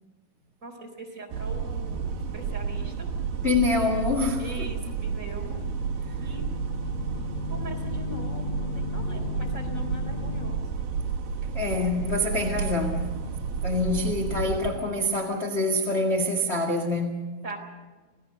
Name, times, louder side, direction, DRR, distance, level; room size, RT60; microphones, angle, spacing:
voice 1, 0.6-3.1 4.4-5.6 6.2-6.4 7.5-10.6 17.4-17.6, right 1 dB, 20° right, 1 dB, 4.1 m, -41 dB
sound 1, 1.3-14.7, right 6 dB, 60° right, 3.3 m, -31 dB
voice 2, 3.4-4.7 11.5-13.1 13.6-17.1, left 2 dB, 30° left, 2 dB, 1.2 m, -26 dB
sound 2, 5.6-10.6, left 4 dB, 50° left, 4.1 m, -35 dB
27.5 x 18.5 x 6.6 m, 1.3 s
omnidirectional pair, 4.7 m